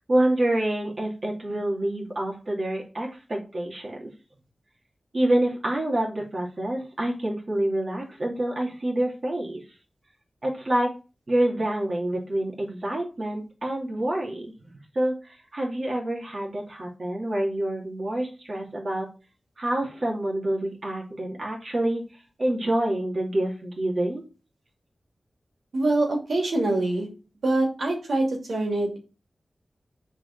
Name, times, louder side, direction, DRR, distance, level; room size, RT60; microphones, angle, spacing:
voice 1, 0.1-4.1 5.1-9.6 10.4-10.9 11.3-14.5 14.9-19.1 19.6-22.0 22.4-24.2, right 1 dB, 45° right, -2 dB, 2.6 m, -27 dB
voice 2, 25.7-27.1 27.4-29.0, right 2 dB, 90° right, 1 dB, 2.7 m, -24 dB
9.8 x 4.0 x 6.5 m, 0.34 s
wide cardioid pair, 115°, 0 cm